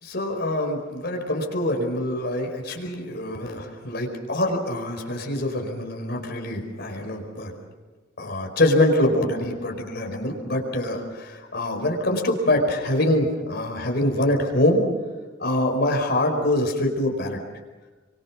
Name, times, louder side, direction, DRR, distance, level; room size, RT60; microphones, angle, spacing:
voice 1, 0.0-7.6 8.2-14.9 15.4-17.4, left 1 dB, 55° left, 3 dB, 4.7 m, -24 dB
29.5 x 24.5 x 6.1 m, 1.3 s
head